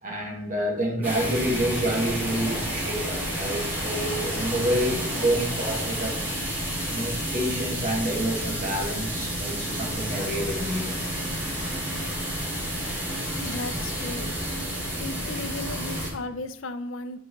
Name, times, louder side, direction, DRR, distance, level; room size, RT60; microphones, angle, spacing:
voice 1, 0.0-6.2 6.9-11.0, right 1 dB, 45° right, -1 dB, 1.9 m, -28 dB
sound 1, 1.0-16.1, equal, 10° right, 2.5 m, -30 dB
voice 2, 13.4-14.3 15.0-17.2, left 2 dB, 85° left, 11 dB, 0.6 m, -35 dB
8.1 x 4.7 x 3.1 m, 0.81 s
head